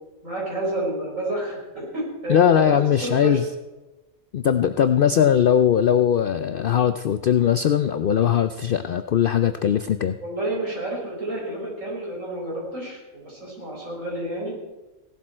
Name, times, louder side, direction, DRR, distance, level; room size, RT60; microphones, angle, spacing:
voice 1, 0.2-3.4 10.2-14.5, right 1 dB, 65° right, -4 dB, 5.4 m, -30 dB
voice 2, 2.3-3.5 4.3-10.2, left 9 dB, 65° left, 10 dB, 0.5 m, -20 dB
17.0 x 12.0 x 4.3 m, 1.1 s
omnidirectional pair, 1.4 m